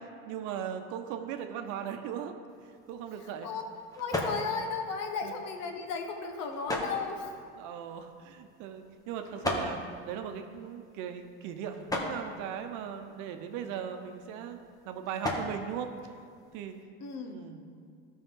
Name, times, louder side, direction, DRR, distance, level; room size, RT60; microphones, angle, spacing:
voice 1, 0.2-2.3 2.9-3.5 5.2-5.3 7.6-9.8 10.1-14.6 14.9-15.9 16.5-16.7 17.3-17.6, right 8 dB, 60° right, 6 dB, 0.9 m, -38 dB
sound 1, 2.5-16.8, left 1 dB, 10° left, 1.3 m, -40 dB
voice 2, 3.2-3.6 3.9-7.4 17.0-17.4, left 5 dB, 55° left, 4 dB, 1.3 m, -35 dB
12.5 x 5.6 x 3.8 m, 2.1 s
supercardioid pair, 100°, 33 cm